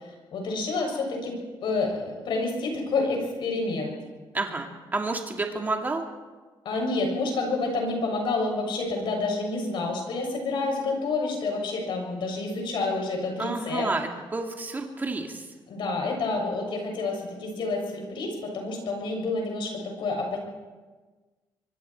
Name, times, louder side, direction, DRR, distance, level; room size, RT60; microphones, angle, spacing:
voice 1, 0.0-3.9 6.7-13.9 15.7-20.4, left 3 dB, 70° left, 1 dB, 7.1 m, -29 dB
voice 2, 4.3-6.0 13.4-15.5, right 3 dB, 20° right, 2 dB, 2.5 m, -30 dB
24.0 x 23.5 x 4.6 m, 1.3 s
cardioid pair, 140°, 9 cm